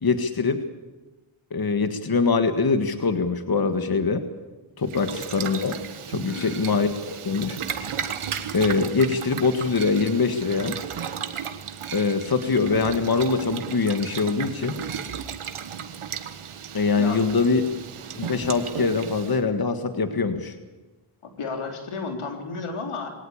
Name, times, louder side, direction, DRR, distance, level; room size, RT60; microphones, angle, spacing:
voice 1, 0.0-0.6 1.5-4.3 4.8-5.8 6.1-7.6 8.5-10.8 11.9-14.8 16.7-17.7 18.2-20.6, left 4 dB, 45° left, 8 dB, 1.7 m, -23 dB
Boiling, 4.8-19.4, right 8 dB, 80° right, 1.5 m, -35 dB
voice 2, 6.3-6.7 17.0-17.2 21.2-23.1, left 4 dB, 90° left, 3 dB, 3.6 m, -33 dB
22.0 x 18.0 x 8.6 m, 1.2 s
cardioid pair, 60°, 49 cm